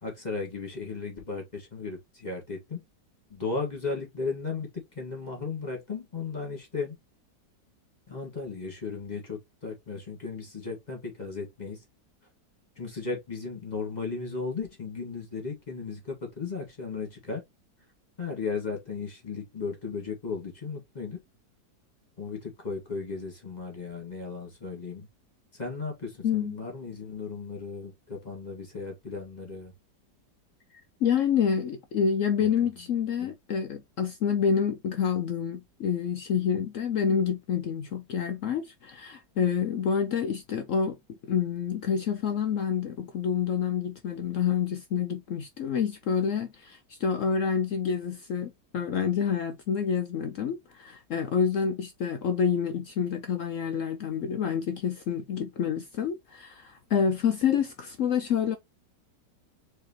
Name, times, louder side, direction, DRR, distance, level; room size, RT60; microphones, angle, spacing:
voice 1, 0.0-2.8 3.3-4.7 4.9-7.0 8.1-11.8 12.8-17.4 18.2-21.2 22.2-25.1 25.5-29.7 32.4-32.5 33.2-33.3, left 4 dB, 25° left, 2.1 m, -35 dB
voice 2, 26.2-26.6 31.0-41.0 41.2-58.6, left 7 dB, 70° left, 0.8 m, -28 dB
4.8 x 3.6 x 2.9 m
omnidirectional pair, 1.9 m